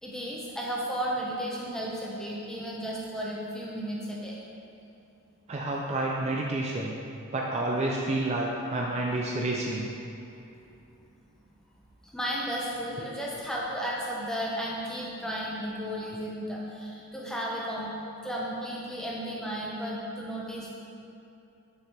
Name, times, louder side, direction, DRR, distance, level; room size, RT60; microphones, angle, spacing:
voice 1, 0.0-4.4 12.0-17.9 18.2-20.7, equal, 5° left, -5 dB, 0.7 m, -34 dB
voice 2, 5.5-6.9 7.3-9.9, right 2 dB, 30° right, -2 dB, 0.4 m, -29 dB
6.4 x 4.7 x 3.4 m, 2.8 s
head